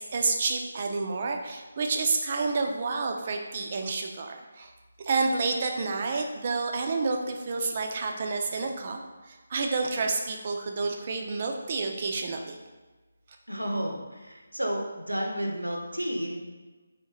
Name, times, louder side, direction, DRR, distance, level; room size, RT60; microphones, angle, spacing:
voice 1, 0.1-4.7 5.0-9.0 9.3-12.6, right 4 dB, 35° right, 3 dB, 0.4 m, -29 dB
voice 2, 13.5-16.4, equal, 85° right, 0 dB, 0.7 m, -31 dB
3.5 x 2.8 x 2.8 m, 1.3 s
figure-of-eight pair, 150°, 0 cm